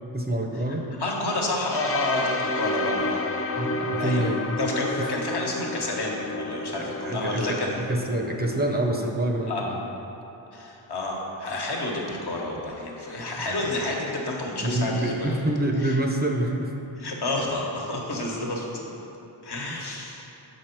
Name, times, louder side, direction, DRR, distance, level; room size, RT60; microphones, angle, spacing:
voice 1, 0.1-0.9 3.6-4.6 5.0-5.1 6.7-9.8 14.6-16.8 19.7-19.9, right 1 dB, 20° right, 1 dB, 0.6 m, -27 dB
voice 2, 1.0-3.2 4.0-4.3 4.6-7.8 9.5-9.7 10.5-15.4 15.8-15.9 17.0-18.9 19.4-20.3, left 2 dB, 55° left, -1 dB, 1.3 m, -30 dB
sound 1, 1.7-9.5, left 2 dB, 30° left, 0.5 m, -31 dB
6.8 x 4.8 x 4.5 m, 3.0 s
cardioid pair, 55°, 47 cm